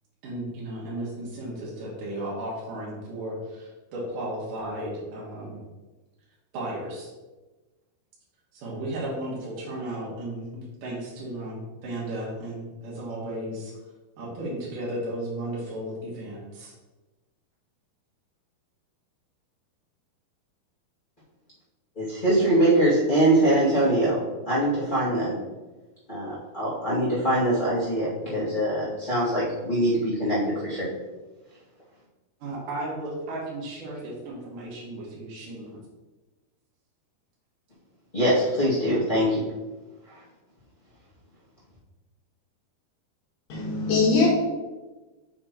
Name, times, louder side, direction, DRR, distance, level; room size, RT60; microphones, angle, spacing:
voice 1, 0.2-5.6 6.5-7.1 8.5-13.8 14.2-16.7 32.4-35.8, right 1 dB, 60° right, -5 dB, 3.2 m, -34 dB
voice 2, 21.9-25.4 26.1-30.9 38.1-39.5, right 1 dB, 20° left, -11 dB, 1.5 m, -23 dB
voice 3, 43.5-44.3, left 4 dB, 65° left, -3 dB, 2.7 m, -21 dB
7.5 x 5.8 x 3.1 m, 1.2 s
omnidirectional pair, 4.5 m